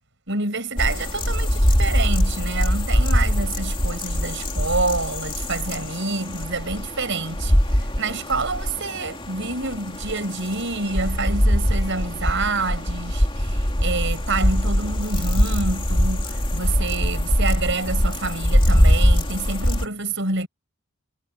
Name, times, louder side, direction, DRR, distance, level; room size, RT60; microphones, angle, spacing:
voice 1, 0.3-20.5, right 3 dB, 60° right, 6.7 m, -27 dB
sound 1, 0.8-19.9, equal, 25° left, 2.8 m, -22 dB
head